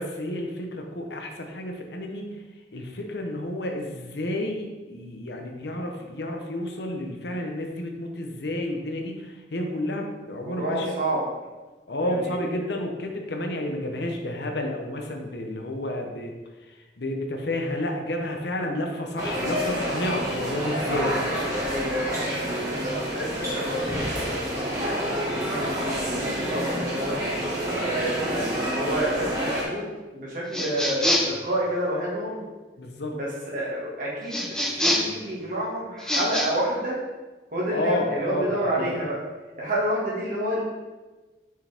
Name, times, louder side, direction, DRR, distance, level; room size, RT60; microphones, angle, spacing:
voice 1, 0.0-2.4 2.7-10.9 11.9-16.3 16.6-21.2 32.8-33.2 37.7-39.0, left 1 dB, 70° left, 3 dB, 0.9 m, -31 dB
voice 2, 10.4-11.3 12.0-12.4 18.6-18.8 21.7-27.2 27.8-32.4 33.1-34.5 34.7-37.0 37.5-39.2 39.6-40.6, right 1 dB, 50° right, -5 dB, 1.9 m, -29 dB
sound 1, 19.2-29.6, equal, 20° right, 1.4 m, -28 dB
sound 2, 30.5-31.4 34.3-35.2 36.0-36.5, left 1 dB, 5° left, 0.7 m, -25 dB
6.2 x 5.0 x 3.5 m, 1.2 s
head